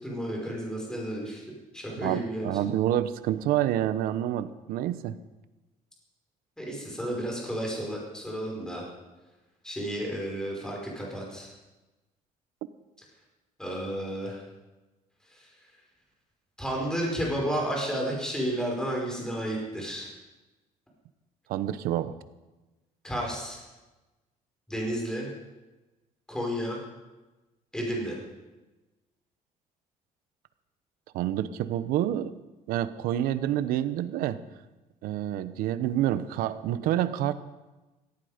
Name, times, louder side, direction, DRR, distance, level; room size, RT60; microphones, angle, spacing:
voice 1, 0.0-1.4 1.7-2.5 6.6-8.9 9.6-11.5 13.6-14.4 16.6-20.1 23.0-23.6 24.7-25.3 26.3-26.8 27.7-28.2, equal, 5° left, -2 dB, 5.3 m, -32 dB
voice 2, 2.0-5.2 21.5-22.1 31.1-32.4 32.7-34.4 35.0-37.3, right 12 dB, 90° right, 13 dB, 1.0 m, -28 dB
17.5 x 15.5 x 5.2 m, 1.1 s
cardioid pair, 135°, 15 cm